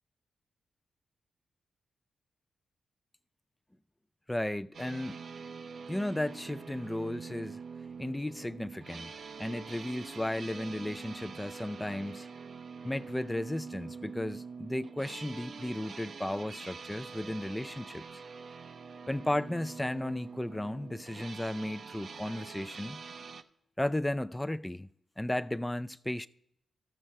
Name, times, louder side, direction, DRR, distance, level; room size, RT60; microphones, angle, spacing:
voice 1, 4.3-5.2 5.9-7.6 8.0-9.1 9.4-12.3 12.8-18.2 19.1-23.0 23.8-24.9 25.2-26.3, left 1 dB, 15° left, 0.4 m, -34 dB
sound 1, 4.7-23.4, right 5 dB, 65° right, 0.6 m, -45 dB
14.0 x 6.2 x 4.4 m
supercardioid pair, 50°, 0 cm